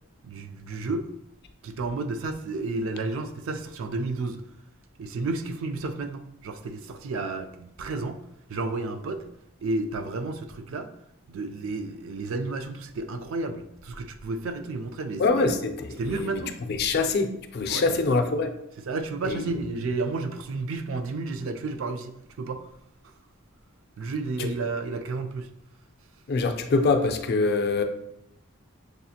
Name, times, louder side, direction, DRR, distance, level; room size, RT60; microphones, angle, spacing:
voice 1, 0.2-1.1 1.6-4.4 5.0-8.2 8.5-9.2 9.6-10.9 11.3-15.5 16.0-16.6 17.7-18.0 18.9-22.6 24.0-25.5, right 3 dB, 65° right, 7 dB, 0.4 m, -31 dB
voice 2, 15.2-16.4 16.7-18.5 19.3-19.4 24.4-24.5 26.3-27.8, left 3 dB, 50° left, 7 dB, 0.4 m, -24 dB
6.5 x 2.4 x 2.7 m, 0.79 s
head